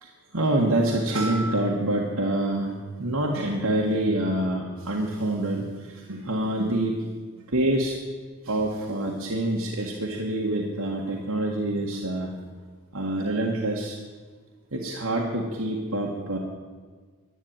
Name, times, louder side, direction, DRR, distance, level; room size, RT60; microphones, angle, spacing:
voice 1, 0.0-7.0 7.5-8.0 8.4-12.3 12.9-14.0 14.7-16.4, right 1 dB, 90° right, -1 dB, 1.8 m, -26 dB
11.5 x 11.0 x 8.9 m, 1.6 s
head